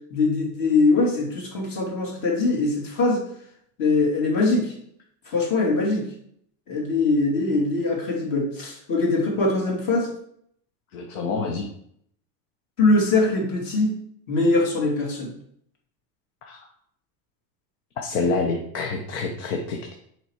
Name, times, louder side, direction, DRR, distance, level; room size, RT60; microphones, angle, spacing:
voice 1, 0.1-3.2 3.8-4.8 5.3-6.1 6.7-10.1 12.8-14.0 14.3-15.3, left 3 dB, 50° left, 0 dB, 2.6 m, -22 dB
voice 2, 10.9-11.7 16.4-16.6 18.0-19.9, left 4 dB, 90° left, 2 dB, 1.2 m, -27 dB
6.7 x 5.2 x 4.8 m, 0.69 s
cardioid pair, 150°, 41 cm